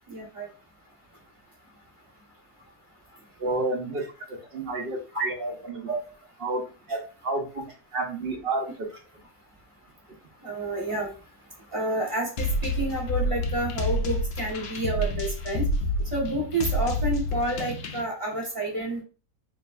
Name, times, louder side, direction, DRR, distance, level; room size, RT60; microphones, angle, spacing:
voice 1, 0.1-0.5 5.1-5.3 5.9-6.0 6.9-7.0 10.4-11.1 11.7-15.7 16.1-19.0, right 2 dB, 20° right, -2 dB, 1.2 m, -29 dB
voice 2, 3.4-4.0 4.5-5.0 5.2-5.9 6.4-6.6 6.9-7.6 7.9-8.9, right 2 dB, 45° right, 1 dB, 0.9 m, -30 dB
sound 1, 12.4-18.0, left 1 dB, 70° left, 0.6 m, -28 dB
5.1 x 2.9 x 2.5 m, 0.35 s
omnidirectional pair, 1.8 m